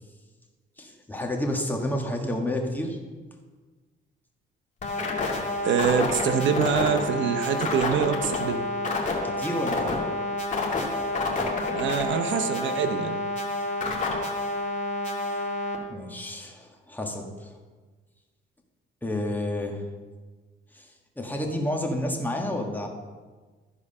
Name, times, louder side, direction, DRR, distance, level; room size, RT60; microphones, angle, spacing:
voice 1, 0.8-3.0 9.2-10.1 15.9-17.5 19.0-19.8 20.7-22.9, left 1 dB, 10° left, 1 dB, 1.6 m, -30 dB
sound 1, 4.8-15.8, left 2 dB, 40° left, 2.2 m, -28 dB
voice 2, 5.6-8.6 11.7-13.2, right 7 dB, 70° right, 8 dB, 0.8 m, -25 dB
13.5 x 4.9 x 5.5 m, 1.4 s
cardioid pair, 90°, 20 cm